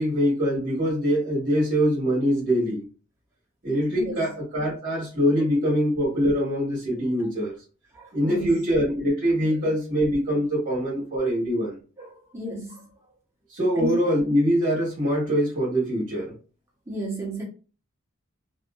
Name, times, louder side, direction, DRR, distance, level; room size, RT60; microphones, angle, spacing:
voice 1, 0.0-2.8 3.6-7.5 8.1-11.8 13.5-16.3, equal, 40° right, 1.2 m, -23 dB
voice 2, 3.9-4.3 7.9-8.6 10.7-10.8 12.0-12.9 13.7-14.0 16.9-17.4, right 1 dB, 10° right, 1.0 m, -33 dB
2.6 x 2.5 x 2.3 m
head